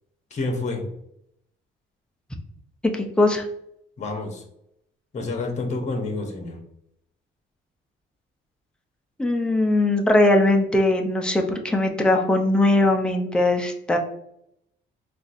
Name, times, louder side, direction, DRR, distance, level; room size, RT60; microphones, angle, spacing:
voice 1, 0.3-0.9 4.0-4.4 5.1-6.6, left 3 dB, 35° left, 3 dB, 0.8 m, -28 dB
voice 2, 2.8-3.5 9.2-14.0, left 2 dB, 5° left, 3 dB, 0.5 m, -20 dB
3.9 x 2.5 x 2.5 m, 0.76 s
cardioid pair, 90°, 20 cm